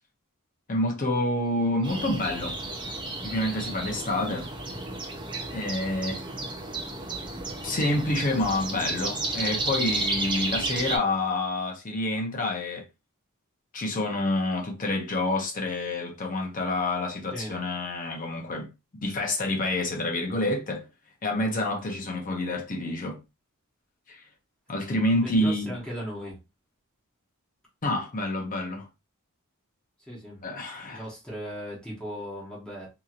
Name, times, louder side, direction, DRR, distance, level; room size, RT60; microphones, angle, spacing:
voice 1, 0.7-2.6 3.2-4.5 5.5-6.2 7.6-12.9 13.7-18.7 19.0-20.9 21.2-23.2 24.1-24.2 24.7-25.7 27.8-28.9 30.4-31.0, left 1 dB, 35° left, 0.7 m, -28 dB
sound 1, 1.8-11.0, right 2 dB, 20° right, 0.5 m, -32 dB
voice 2, 25.1-26.4 30.1-30.4 30.7-32.9, equal, 5° left, 1.0 m, -37 dB
2.9 x 2.7 x 2.4 m
head